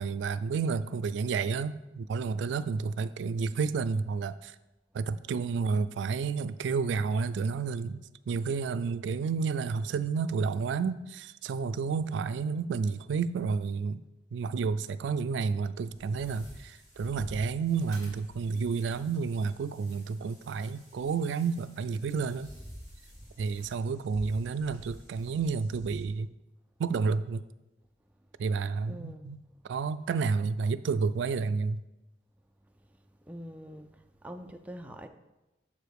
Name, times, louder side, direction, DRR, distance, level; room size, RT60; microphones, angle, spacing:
voice 1, 0.0-4.5 4.9-8.0 8.3-14.0 14.3-22.5 23.4-26.3 26.8-27.4 28.4-31.8, right 5 dB, 85° right, 0.3 m, -30 dB
sound 1, 15.8-26.0, equal, 15° left, 2.5 m, -50 dB
voice 2, 28.9-29.3 33.3-33.9 34.2-35.1, equal, 10° right, 0.3 m, -43 dB
7.0 x 5.0 x 4.7 m
head